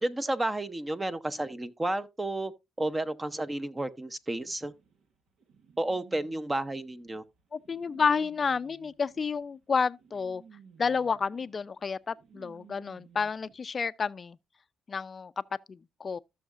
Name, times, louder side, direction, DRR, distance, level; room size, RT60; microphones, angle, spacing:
voice 1, 0.0-2.5 2.8-4.7 5.8-7.2, right 1 dB, 20° right, 0.8 m, -31 dB
sound 1, 4.4-13.5, right 6 dB, 70° right, 1.4 m, -57 dB
voice 2, 7.5-10.4 10.8-14.4 14.9-15.4 15.7-16.2, left 5 dB, 40° left, 0.5 m, -30 dB
14.5 x 6.4 x 2.5 m
cardioid pair, 90°, 0 cm